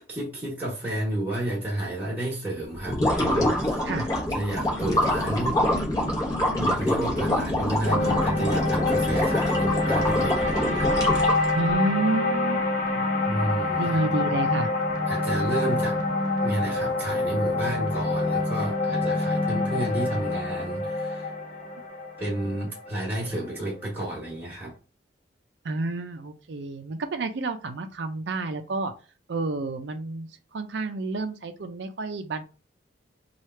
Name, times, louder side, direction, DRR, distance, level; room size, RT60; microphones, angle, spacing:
voice 1, 0.1-3.9 4.3-5.7 6.5-10.9 13.3-14.1 15.1-16.0 16.4-21.3 22.2-24.7, right 1 dB, 10° right, 1.2 m, -31 dB
sound 1, 2.8-11.7, left 1 dB, 20° left, 0.9 m, -26 dB
sound 2, 7.9-24.1, left 2 dB, 45° left, 0.8 m, -26 dB
voice 2, 11.5-12.6 12.9-13.1 13.8-14.7 25.6-28.9 29.3-32.4, right 2 dB, 70° right, 0.5 m, -30 dB
3.2 x 2.4 x 4.2 m
head